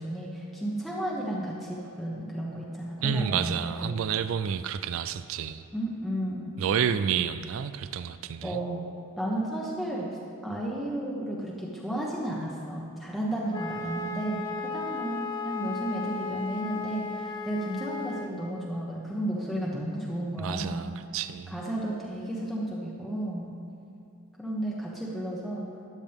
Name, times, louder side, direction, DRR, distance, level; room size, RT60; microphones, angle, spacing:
voice 1, 0.0-3.9 5.7-6.5 8.4-8.8 9.2-10.1 10.4-20.9 21.5-23.5 24.4-25.6, right 1 dB, ahead, -5 dB, 1.1 m, -33 dB
voice 2, 3.0-5.6 6.6-8.6 20.4-21.5, right 7 dB, 65° right, 12 dB, 0.3 m, -30 dB
Wind instrument woodwind instrument, 13.5-18.3, left 4 dB, 20° left, 0.6 m, -35 dB
13.5 x 10.5 x 3.5 m, 2.7 s
head